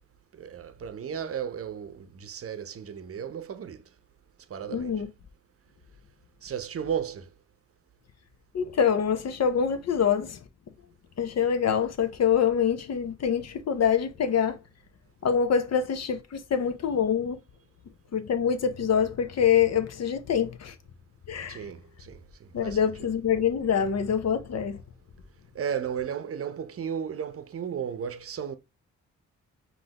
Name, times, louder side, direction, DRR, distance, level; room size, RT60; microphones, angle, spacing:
voice 1, 0.3-3.8 4.5-5.0 6.4-7.3 21.5-22.9 25.5-28.6, right 8 dB, 45° right, 0.8 m, -34 dB
voice 2, 4.7-5.1 8.5-10.4 11.2-14.6 15.2-17.4 18.1-20.7 21.3-21.6 22.5-24.8, left 7 dB, 50° left, 0.9 m, -25 dB
5.4 x 2.8 x 2.9 m
supercardioid pair, 50°, 33 cm